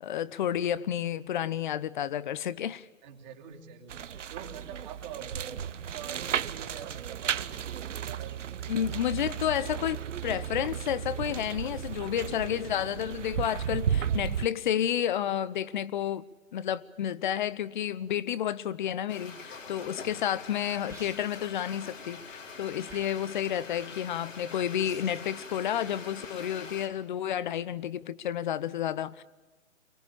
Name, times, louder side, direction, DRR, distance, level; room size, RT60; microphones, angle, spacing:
voice 1, 0.0-2.9 8.7-16.2 16.5-29.2, left 10 dB, 40° left, 0.9 m, -31 dB
voice 2, 3.0-9.2, right 8 dB, 35° right, 2.9 m, -46 dB
sound 1, 3.9-14.5, right 8 dB, 70° right, 0.9 m, -34 dB
sound 2, 19.1-26.9, left 4 dB, 75° left, 4.8 m, -44 dB
sound 3, 20.9-21.5 22.8-23.5 24.8-25.3, right 5 dB, 10° right, 2.7 m, -52 dB
24.5 x 20.5 x 8.7 m
hypercardioid pair, 140°, 39 cm